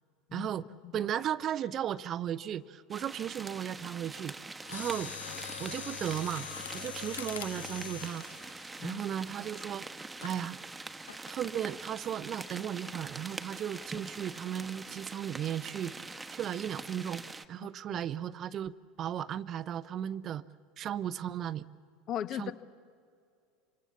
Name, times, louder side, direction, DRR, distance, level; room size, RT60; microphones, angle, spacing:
voice 1, 0.3-0.7 0.9-4.4 4.7-5.1 5.6-6.5 6.7-8.2 8.8-9.9 10.2-10.6 11.3-17.2 17.5-18.7 19.0-20.4 20.8-21.7 22.3-22.5, right 10 dB, 40° right, 18 dB, 0.7 m, -35 dB
sound 1, 2.9-17.4, right 3 dB, 10° right, 1.2 m, -44 dB
Mechanisms, 4.6-9.6 10.2-10.4 11.1-11.4 11.7-11.8, left 9 dB, 70° left, 1.0 m, -43 dB
voice 2, 22.1-22.5, left 11 dB, 40° left, 13 dB, 1.2 m, -37 dB
27.0 x 25.5 x 7.1 m, 2.2 s
figure-of-eight pair, 75°, 0 cm